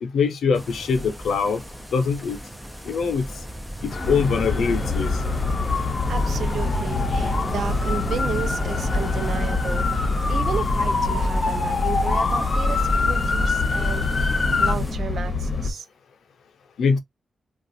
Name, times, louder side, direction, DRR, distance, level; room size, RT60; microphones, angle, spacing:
voice 1, 0.0-1.6 1.9-2.4 2.8-3.2 3.8-5.2 11.6-11.7 16.8-17.0, left 5 dB, 90° left, 0.6 m, -23 dB
sound 1, 0.5-14.9, right 1 dB, 5° right, 0.6 m, -36 dB
sound 2, 3.9-14.7, left 4 dB, 45° left, 0.6 m, -27 dB
sound 3, 4.0-15.7, left 2 dB, 30° left, 1.0 m, -26 dB
voice 2, 5.8-15.9, right 6 dB, 70° right, 0.5 m, -33 dB
2.4 x 2.4 x 3.9 m
cardioid pair, 90°, 0 cm